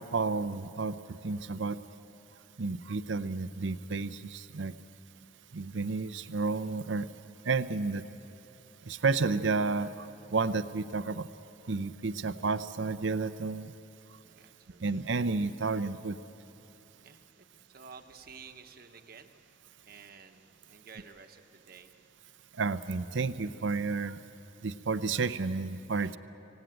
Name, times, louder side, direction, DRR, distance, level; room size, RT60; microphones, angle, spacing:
voice 1, 0.0-1.8 2.6-4.7 5.5-7.1 7.4-8.1 8.8-11.3 11.7-13.7 14.8-16.2 22.5-24.2 24.6-26.2, right 4 dB, 70° right, 13 dB, 0.6 m, -31 dB
voice 2, 14.2-14.8 17.0-19.3 19.8-21.9 26.0-26.2, right 5 dB, 50° right, 6 dB, 1.1 m, -52 dB
26.0 x 17.5 x 9.0 m, 3.0 s
head